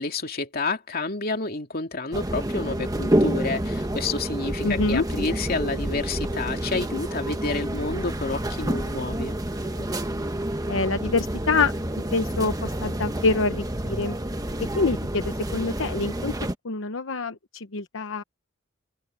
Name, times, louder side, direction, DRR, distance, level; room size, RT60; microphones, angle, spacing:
voice 1, 0.0-9.3, left 3 dB, 50° left, 2.7 m, -29 dB
sound 1, 2.1-16.5, right 1 dB, 20° right, 1.4 m, -28 dB
voice 2, 4.6-5.0 9.8-9.9 10.7-14.1 14.7-16.4 16.6-18.2, left 3 dB, 80° left, 0.9 m, -26 dB
head